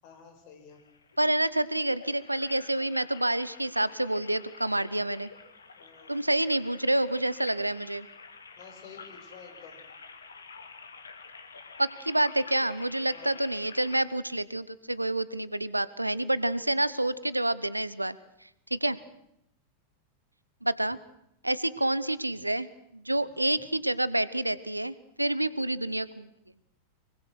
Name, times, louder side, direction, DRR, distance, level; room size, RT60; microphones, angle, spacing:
voice 1, 0.0-0.8 5.8-6.2 8.6-9.8 13.1-13.3 18.8-19.1 23.1-23.5, left 6 dB, 45° left, 5 dB, 6.1 m, -51 dB
sound 1, 0.7-14.0, left 5 dB, 70° left, 2.1 m, -49 dB
voice 2, 1.2-5.3 6.1-8.1 11.8-18.2 18.7-19.0 20.6-21.0 21.4-26.3, right 1 dB, 85° right, 18 dB, 0.9 m, -28 dB
24.5 x 23.0 x 6.2 m, 0.78 s
figure-of-eight pair, 90°, 0 cm